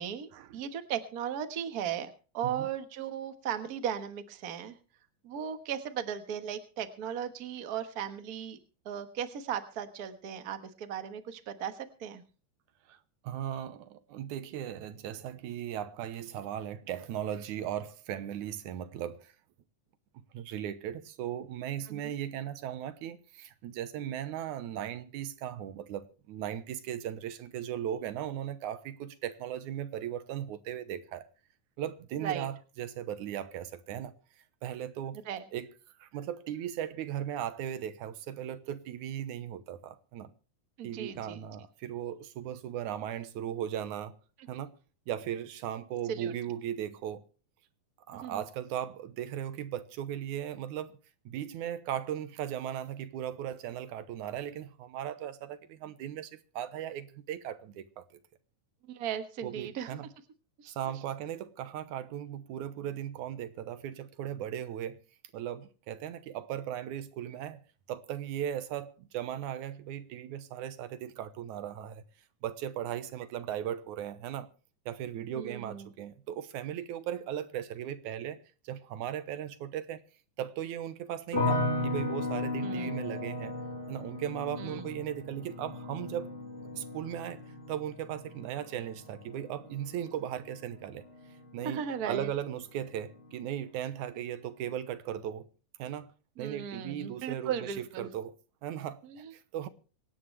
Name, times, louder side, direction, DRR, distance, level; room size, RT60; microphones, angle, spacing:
voice 1, 0.0-4.7 5.2-8.6 8.8-12.2 21.9-22.1 32.2-32.5 35.2-35.4 40.8-41.4 46.1-46.3 48.1-48.4 58.9-60.0 60.6-60.9 75.3-75.9 82.6-83.0 84.6-84.9 91.6-92.3 96.4-98.1 99.0-99.3, right 8 dB, 50° right, 1.1 m, -37 dB
voice 2, 13.2-19.3 20.3-31.3 31.8-34.1 34.6-35.2 35.5-35.7 36.0-40.3 40.8-44.2 44.5-44.8 45.1-47.3 48.1-50.9 51.3-58.1 59.4-60.1 60.7-65.0 65.3-67.6 67.9-72.0 72.4-74.5 74.9-80.0 80.4-83.6 83.9-86.3 86.7-87.4 87.7-91.0 91.5-95.5 95.8-96.1 96.4-98.3 98.6-99.7, right 10 dB, 75° right, 2.3 m, -37 dB
sound 1, 81.3-92.4 92.7-93.4, left 2 dB, 15° left, 2.9 m, -36 dB
25.0 x 10.0 x 3.3 m
omnidirectional pair, 3.6 m